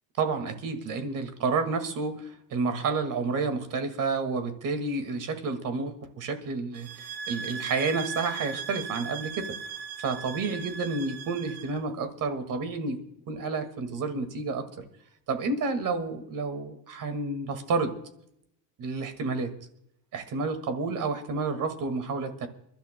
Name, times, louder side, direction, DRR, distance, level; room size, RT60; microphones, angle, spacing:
voice 1, 0.2-9.5 10.0-13.0 13.3-14.7 15.3-18.0 18.8-19.5 20.1-22.5, right 4 dB, 50° right, 9 dB, 2.0 m, -30 dB
sound 1, 6.7-11.8, right 6 dB, 65° right, 1.3 m, -38 dB
29.5 x 12.0 x 2.2 m, 0.74 s
cardioid pair, 145°, 41 cm